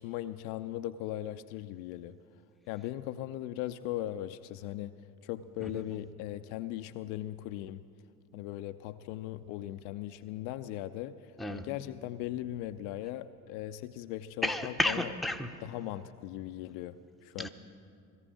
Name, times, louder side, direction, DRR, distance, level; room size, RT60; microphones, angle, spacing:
voice 1, 0.0-2.2 2.7-4.9 5.2-7.8 8.3-15.1 15.6-17.5, left 14 dB, 50° left, 11 dB, 0.5 m, -39 dB
voice 2, 14.4-15.5 17.4-17.5, left 1 dB, ahead, 7 dB, 0.7 m, -32 dB
18.0 x 14.5 x 5.0 m, 2.4 s
figure-of-eight pair, 50°, 44 cm